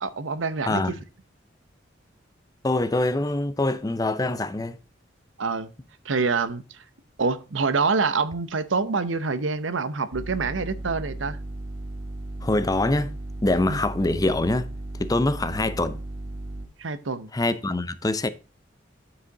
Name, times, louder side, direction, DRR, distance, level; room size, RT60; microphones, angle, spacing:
voice 1, 0.0-0.8 5.4-5.7 6.0-6.8 7.2-11.4 13.6-13.8 16.8-17.3, right 4 dB, 90° right, 0.8 m, -26 dB
voice 2, 2.6-4.8 12.4-13.2 13.4-14.7 15.0-16.0 17.3-18.3, left 2 dB, 20° left, 0.5 m, -24 dB
sound 1, 10.1-16.7, right 2 dB, 25° right, 1.5 m, -35 dB
9.9 x 4.9 x 3.9 m
head